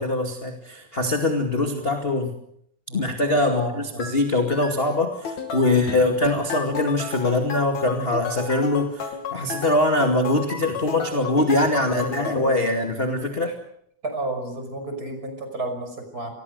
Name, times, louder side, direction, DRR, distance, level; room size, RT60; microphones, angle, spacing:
voice 1, 0.0-2.4 2.9-13.6, left 2 dB, 20° left, 4 dB, 2.1 m, -23 dB
voice 2, 3.5-4.2 11.9-12.5 14.0-16.3, right 2 dB, 30° right, 6 dB, 6.3 m, -32 dB
sound 1, 4.0-4.2 4.5-4.8 5.1-12.4, left 5 dB, 65° left, 3.6 m, -33 dB
29.0 x 21.5 x 6.7 m, 0.71 s
omnidirectional pair, 3.5 m